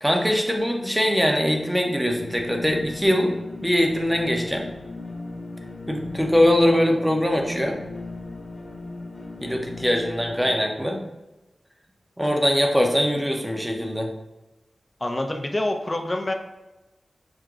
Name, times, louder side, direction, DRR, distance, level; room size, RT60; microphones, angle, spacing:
voice 1, 0.0-3.3 3.6-4.7 5.9-7.8 9.4-11.0 12.2-14.1, equal, 5° right, 2 dB, 0.8 m, -22 dB
sound 1, 2.0-10.5, left 3 dB, 55° left, 1.3 m, -37 dB
voice 2, 15.0-16.3, left 1 dB, 30° left, 3 dB, 0.6 m, -26 dB
6.0 x 2.2 x 3.7 m, 1.0 s
cardioid pair, 55°, 0 cm